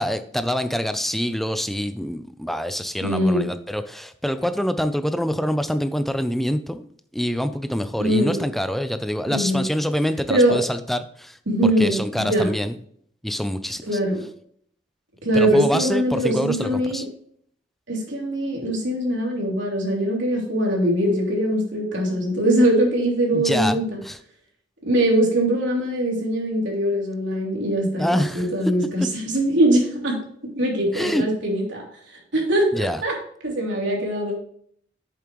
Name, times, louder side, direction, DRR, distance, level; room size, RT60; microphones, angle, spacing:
voice 1, 0.0-6.8 7.1-12.7 13.2-14.0 15.3-17.0 23.3-24.2 28.0-28.5 29.0-29.1 30.9-31.3 32.7-33.0, equal, ahead, 10 dB, 0.4 m, -26 dB
voice 2, 3.0-3.5 8.0-8.4 9.3-9.6 10.3-10.6 11.5-12.5 13.8-14.2 15.2-17.0 17.9-24.0 24.8-30.2 30.5-31.9 32.3-33.1 33.4-34.4, right 1 dB, 85° right, -1 dB, 3.2 m, -22 dB
8.5 x 7.1 x 3.1 m, 0.64 s
head